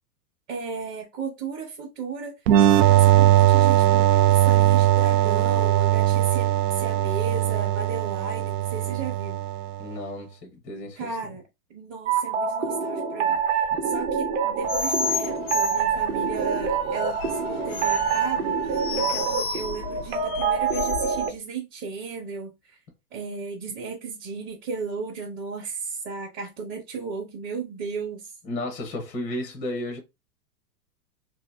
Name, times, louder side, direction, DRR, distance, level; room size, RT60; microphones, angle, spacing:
voice 1, 0.5-9.4 11.0-11.4 11.7-22.8 23.1-28.3, right 5 dB, 25° right, 0.7 m, -35 dB
sound 1, 2.5-9.9, right 13 dB, 85° right, 0.5 m, -20 dB
voice 2, 9.8-11.2 13.7-13.8 28.4-30.0, left 1 dB, 15° left, 0.5 m, -33 dB
sound 2, 12.1-21.3, right 6 dB, 50° right, 0.9 m, -26 dB
sound 3, 14.6-21.3, left 6 dB, 65° left, 0.5 m, -32 dB
2.7 x 2.5 x 3.4 m
hypercardioid pair, 145°, 50 cm